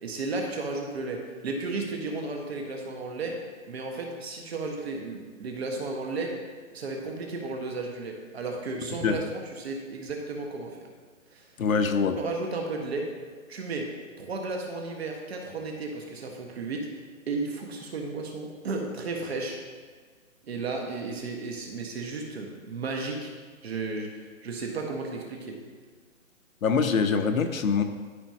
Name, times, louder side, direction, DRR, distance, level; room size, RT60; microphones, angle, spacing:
voice 1, 0.0-3.3 3.7-6.3 6.7-10.9 11.3-11.4 12.2-13.1 13.5-13.9 14.2-16.9 17.3-19.6 20.4-23.3 23.6-25.6, right 3 dB, 50° right, 1 dB, 1.5 m, -34 dB
voice 2, 11.6-12.2 26.6-27.8, left 5 dB, 75° left, 6 dB, 0.9 m, -24 dB
13.0 x 5.2 x 2.9 m, 1.5 s
hypercardioid pair, 160°, 41 cm